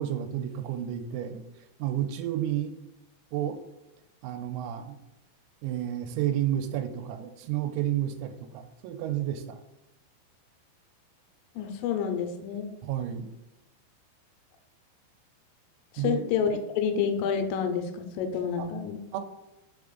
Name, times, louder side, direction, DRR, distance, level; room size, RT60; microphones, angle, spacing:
voice 1, 0.0-1.4 1.8-2.7 3.3-3.6 4.2-5.0 5.6-9.6 12.8-13.3 16.0-16.3 18.6-18.7 19.1-19.2, right 11 dB, 90° right, 5 dB, 3.3 m, -31 dB
voice 2, 11.6-12.7 15.9-19.0, left 7 dB, 80° left, 5 dB, 3.1 m, -29 dB
7.2 x 3.4 x 3.8 m, 0.99 s
omnidirectional pair, 5.9 m